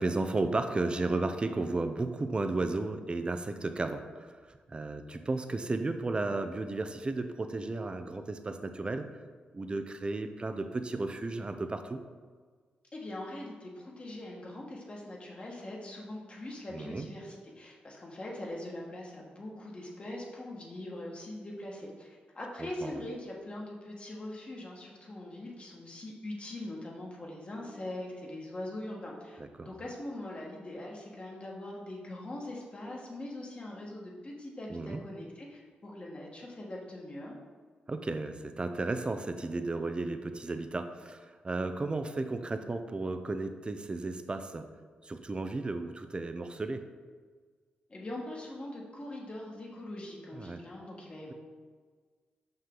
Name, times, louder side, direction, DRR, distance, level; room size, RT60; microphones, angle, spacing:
voice 1, 0.0-9.1 9.5-12.0 16.7-17.1 22.6-23.0 29.4-29.8 34.7-35.0 37.9-44.7 45.0-46.9 50.3-50.6 51.3-51.4, right 2 dB, 30° right, 8 dB, 0.5 m, -34 dB
voice 2, 12.9-37.4 47.9-51.3, left 1 dB, 35° left, -3 dB, 1.6 m, -42 dB
5.6 x 5.5 x 3.8 m, 1.5 s
cardioid pair, 75°, 3 cm